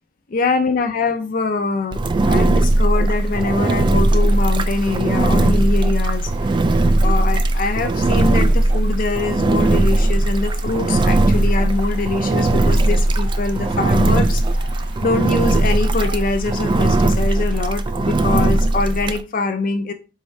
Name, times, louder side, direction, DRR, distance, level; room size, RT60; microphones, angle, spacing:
voice 1, 0.3-6.3 7.0-14.4 15.0-19.9, left 3 dB, 50° left, 6 dB, 0.5 m, -23 dB
sound 1, 1.7-17.8, right 1 dB, 85° right, 2.8 m, -46 dB
Engine, 1.9-19.2, right 2 dB, 25° right, 0.3 m, -18 dB
sound 2, 3.0-17.6, right 2 dB, 65° right, 2.1 m, -47 dB
4.6 x 3.6 x 3.2 m, 0.30 s
head